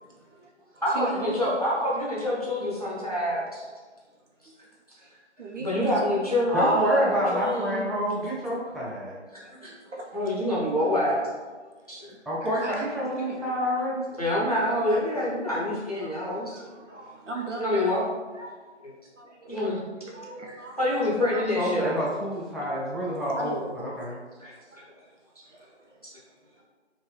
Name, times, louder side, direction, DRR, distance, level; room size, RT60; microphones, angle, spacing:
voice 1, 0.0-1.4 4.1-4.7 5.0-6.0 9.4-10.2 11.6-13.5 16.0-18.0 18.3-18.8 19.2-20.8 21.3-22.2 22.7-22.8 23.3-25.1 25.4-26.6, right 2 dB, 85° right, -1 dB, 0.9 m, -41 dB
voice 2, 0.8-3.7 5.6-7.8 9.3-9.7 10.1-11.3 11.9-12.1 14.2-16.6 17.6-18.0 19.4-19.8 20.8-22.0 24.4-24.5 26.0-26.1, left 1 dB, 35° left, -6 dB, 0.7 m, -26 dB
voice 3, 6.5-9.2 12.3-14.0 21.6-24.2, equal, ahead, -6 dB, 0.4 m, -28 dB
3.5 x 2.6 x 3.1 m, 1.4 s
figure-of-eight pair, 180°, 35 cm